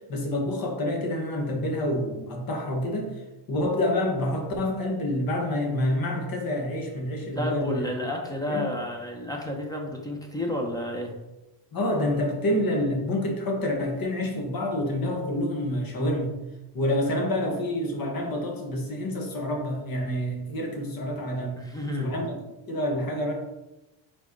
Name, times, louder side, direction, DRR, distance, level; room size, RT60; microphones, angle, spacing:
voice 1, 0.1-3.1 3.5-7.8 8.5-8.7 11.7-16.3 16.7-21.6 22.0-22.4 22.7-23.3, left 1 dB, 45° left, 2 dB, 1.4 m, -27 dB
voice 2, 7.4-11.1 17.0-17.1 21.6-22.4, left 1 dB, 10° left, 1 dB, 0.9 m, -31 dB
4.9 x 4.4 x 4.6 m, 1.0 s
cardioid pair, 140°, 50 cm